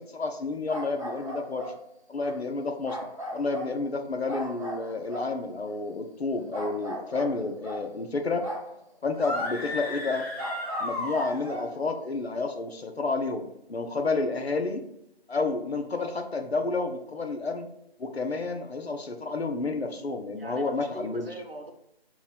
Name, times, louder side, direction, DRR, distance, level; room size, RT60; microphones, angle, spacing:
voice 1, 0.0-1.7 2.1-3.0 3.3-8.5 9.0-10.2 10.8-13.4 13.7-14.8 15.3-17.7 18.0-21.3, left 3 dB, 75° left, 6 dB, 0.7 m, -30 dB
sound 1, 0.7-1.8 2.2-2.4 2.8-3.8 4.3-5.8 6.5-7.9 8.4-8.7 9.3-11.7, equal, 30° right, 0.5 m, -38 dB
sound 2, 9.1-11.7, left 2 dB, 40° left, 0.7 m, -34 dB
voice 2, 20.4-21.7, right 1 dB, 65° right, 3 dB, 0.8 m, -42 dB
3.6 x 3.0 x 4.0 m, 0.81 s
figure-of-eight pair, 160°, 32 cm